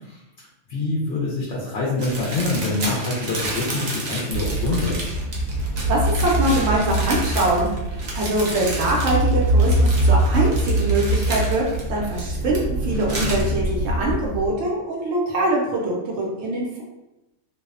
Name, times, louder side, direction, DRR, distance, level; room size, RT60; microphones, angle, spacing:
voice 1, 0.7-5.1, left 3 dB, 70° left, -6 dB, 0.8 m, -25 dB
sound 1, 2.0-12.6 12.9-13.4, right 2 dB, 50° right, 0.5 m, -32 dB
sound 2, 4.3-14.5, right 1 dB, 90° left, 1.0 m, -23 dB
voice 2, 5.9-11.6 11.9-16.8, right 2 dB, 85° right, -3 dB, 0.9 m, -23 dB
2.6 x 2.1 x 2.4 m, 0.93 s
omnidirectional pair, 1.3 m